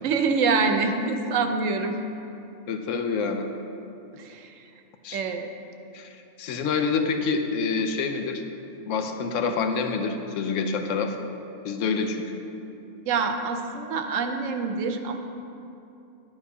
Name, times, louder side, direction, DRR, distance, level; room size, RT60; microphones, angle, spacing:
voice 1, 0.0-2.0 4.1-4.7 5.1-5.5 13.0-15.2, right 4 dB, 80° right, 5 dB, 1.1 m, -26 dB
voice 2, 2.7-3.5 5.0-5.2 5.9-8.4 8.9-11.2 11.6-12.4, left 5 dB, 80° left, 6 dB, 1.0 m, -27 dB
10.5 x 8.9 x 2.7 m, 2.7 s
omnidirectional pair, 1.3 m